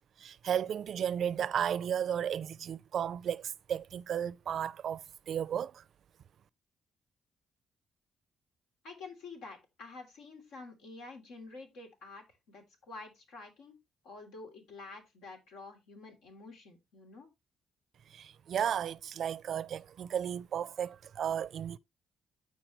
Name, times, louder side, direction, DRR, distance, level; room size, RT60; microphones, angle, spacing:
voice 1, 0.2-5.8 18.1-21.8, right 9 dB, 65° right, 0.4 m, -34 dB
voice 2, 8.8-13.8 14.0-17.3, left 3 dB, 90° left, 3.0 m, -49 dB
13.5 x 4.7 x 3.0 m
cardioid pair, 90°, 0 cm